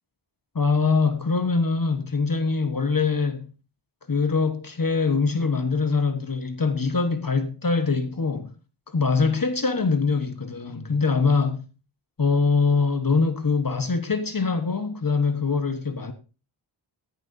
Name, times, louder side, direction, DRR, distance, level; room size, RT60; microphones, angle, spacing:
voice 1, 0.5-3.5 4.1-8.5 8.9-11.6 12.2-16.1, left 4 dB, 45° left, 1.3 m, -23 dB
16.0 x 10.5 x 2.7 m
wide cardioid pair, 80°, 48 cm